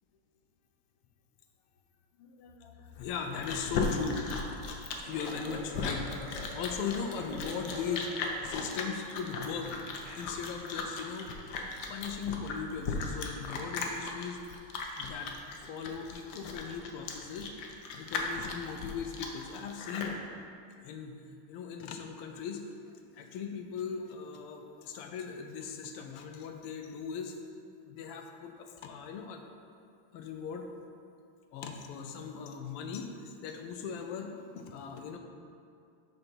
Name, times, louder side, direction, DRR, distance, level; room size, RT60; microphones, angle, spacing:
voice 1, 2.2-4.2 4.7-9.8 10.1-11.3 11.9-14.4 15.0-15.4 15.7-17.5 17.9-20.2 20.8-22.7 23.1-27.4 27.9-29.4 30.1-30.7 31.5-35.2, left 6 dB, 90° left, 4 dB, 1.6 m, -39 dB
Chewing mastication, 2.9-20.2, left 4 dB, 65° left, 1.1 m, -37 dB
sound 1, 4.9-8.8 9.3-9.4 9.9-10.3, right 1 dB, 85° right, 2.2 m, -47 dB
6.4 x 5.9 x 4.4 m, 2.4 s
omnidirectional pair, 2.4 m